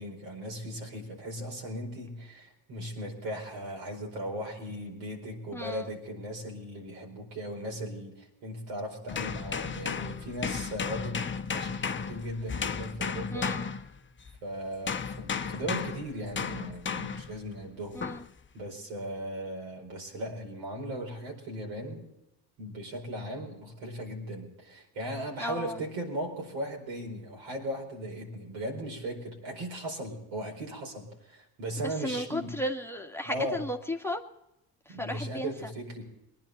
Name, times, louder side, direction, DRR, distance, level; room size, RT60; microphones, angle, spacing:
voice 1, 0.0-13.5 14.4-18.0 18.5-22.1 22.6-32.6 33.2-33.6 34.9-36.0, right 1 dB, 75° right, 1 dB, 4.8 m, -37 dB
voice 2, 5.5-5.9 13.3-13.7 17.9-18.2 25.4-25.8 31.8-34.2 34.9-35.7, left 1 dB, 5° left, 4 dB, 1.8 m, -35 dB
sound 1, 9.1-14.4 14.9-17.4 18.0-18.3, left 6 dB, 25° left, 1.0 m, -34 dB
23.5 x 10.5 x 4.1 m, 0.89 s
hypercardioid pair, 50°, 47 cm